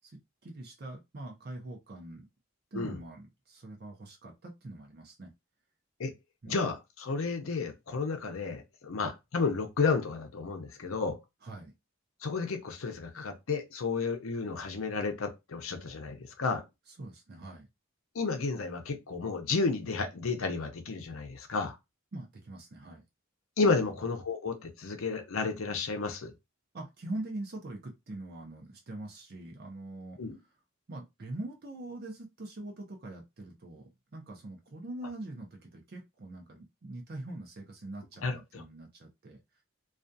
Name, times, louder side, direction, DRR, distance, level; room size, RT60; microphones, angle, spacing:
voice 1, 0.0-2.3 2.7-5.3 6.4-6.5 11.4-11.7 16.9-17.7 22.1-23.0 23.8-24.0 26.7-30.2 30.9-39.4, right 2 dB, 50° right, 0.6 m, -43 dB
voice 2, 6.5-11.2 12.2-16.6 18.1-21.8 23.6-26.3 30.2-30.4 38.2-38.6, left 4 dB, 75° left, 0.6 m, -32 dB
2.4 x 2.3 x 2.6 m
head